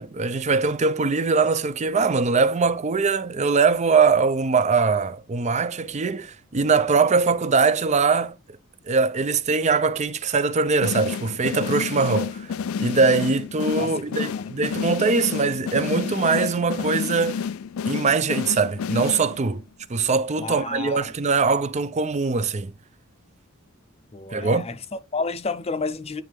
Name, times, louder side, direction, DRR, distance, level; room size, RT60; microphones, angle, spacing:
voice 1, 0.0-8.4 8.9-12.4 12.8-17.4 17.9-19.6 19.9-22.7 24.3-24.7, right 4 dB, 35° right, 0.5 m, -22 dB
sound 1, 10.8-19.6, left 6 dB, 85° left, 0.4 m, -30 dB
voice 2, 20.4-21.0 24.1-26.2, left 4 dB, 30° left, 0.6 m, -31 dB
9.1 x 3.3 x 3.4 m
head